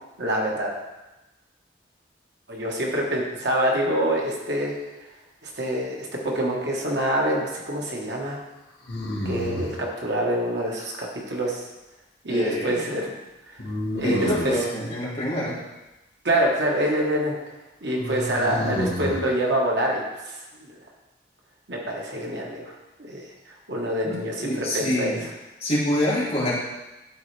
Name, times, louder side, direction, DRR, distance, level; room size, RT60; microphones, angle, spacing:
voice 1, 0.2-0.7 2.5-4.7 5.5-8.4 9.2-11.6 12.2-13.2 13.9-14.6 16.2-17.3 17.8-20.4 21.7-22.7 23.0-23.2 23.7-25.3, right 1 dB, 70° right, -2 dB, 1.4 m, -26 dB
sound 1, 6.1-6.8 8.8-9.8 13.6-14.6 18.0-19.2, left 1 dB, 85° left, 1.5 m, -30 dB
voice 2, 12.3-12.8 14.0-15.5 24.0-25.2 25.6-26.6, left 1 dB, 35° left, -8 dB, 2.5 m, -26 dB
12.0 x 4.0 x 3.4 m, 1.0 s
head